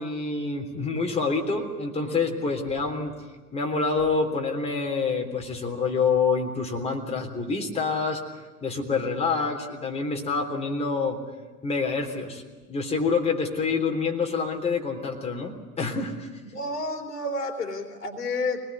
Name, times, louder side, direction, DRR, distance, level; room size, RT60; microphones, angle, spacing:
voice 1, 0.0-3.1 3.5-8.2 8.6-11.2 11.6-12.4 12.7-16.3, left 4 dB, 15° left, 0 dB, 3.5 m, -27 dB
voice 2, 16.5-18.6, left 2 dB, 75° left, 4 dB, 3.1 m, -30 dB
24.0 x 19.5 x 9.5 m, 1.2 s
figure-of-eight pair, 95°, 47 cm